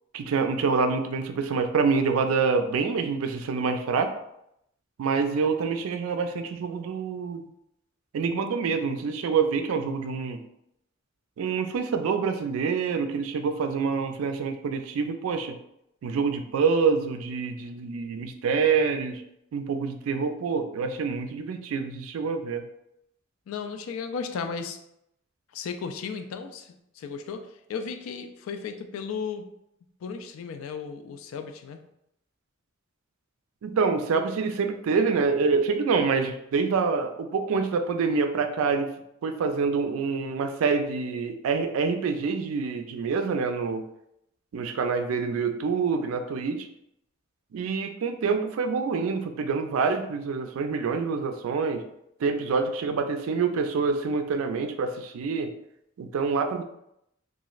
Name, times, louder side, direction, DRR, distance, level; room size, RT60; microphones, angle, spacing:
voice 1, 0.1-4.1 5.0-7.5 8.1-10.4 11.4-15.6 16.0-19.2 19.5-22.6 33.6-38.9 39.2-43.8 44.5-46.7 47.5-51.8 52.2-55.5 56.0-56.6, right 5 dB, 85° right, 7 dB, 0.3 m, -26 dB
voice 2, 23.5-24.8 25.5-29.5 30.0-31.8, left 5 dB, 80° left, 7 dB, 0.3 m, -35 dB
2.9 x 2.4 x 2.4 m, 0.79 s
head